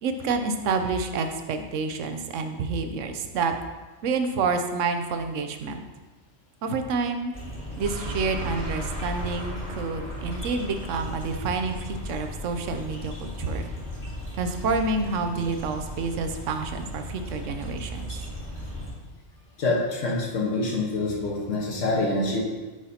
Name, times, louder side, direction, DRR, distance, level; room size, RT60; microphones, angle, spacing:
voice 1, 0.0-3.6 4.0-5.8 6.6-7.3 7.8-13.6 14.4-18.2, right 4 dB, 90° right, 7 dB, 1.0 m, -28 dB
sound 1, 7.3-18.9, equal, 35° left, 2.0 m, -36 dB
voice 2, 19.6-22.4, left 2 dB, 80° left, -2 dB, 1.5 m, -26 dB
9.6 x 4.8 x 2.8 m, 1.3 s
omnidirectional pair, 1.3 m